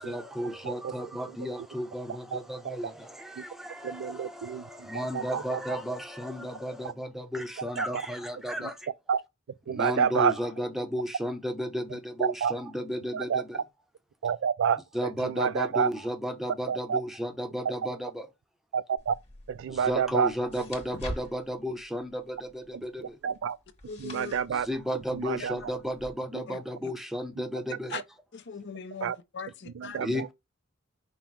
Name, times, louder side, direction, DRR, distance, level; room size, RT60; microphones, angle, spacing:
voice 1, 0.0-8.9 9.7-13.6 14.9-18.3 19.7-23.2 24.5-28.0 30.0-30.3, equal, ahead, 0.6 m, -34 dB
voice 2, 3.8-5.6 7.8-7.9 9.1-9.2 9.7-10.3 12.4-12.5 13.1-13.4 14.2-14.8 15.2-15.9 16.7-17.0 18.7-19.1 19.5-20.3 23.2-23.6 24.0-24.7 25.1-25.5 27.9-28.0 29.0-29.2 29.7-30.1, right 7 dB, 65° right, 0.3 m, -28 dB
sound 1, 19.0-26.1, left 1 dB, 30° left, 1.7 m, -46 dB
voice 3, 23.9-24.4 26.5-26.6 27.9-28.0 28.3-30.0, left 6 dB, 60° left, 0.6 m, -40 dB
5.5 x 2.1 x 4.5 m
head